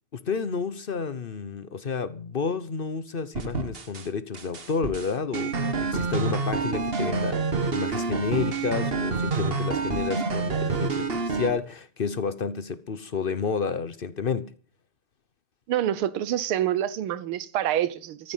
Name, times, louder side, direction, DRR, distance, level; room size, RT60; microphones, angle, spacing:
voice 1, 0.1-14.5, left 5 dB, 50° left, 0.6 m, -30 dB
sound 1, 3.3-4.1 4.3-11.5, right 4 dB, 35° right, 1.3 m, -28 dB
voice 2, 15.7-18.3, right 11 dB, 90° right, 1.8 m, -27 dB
14.5 x 14.0 x 5.7 m
omnidirectional pair, 2.3 m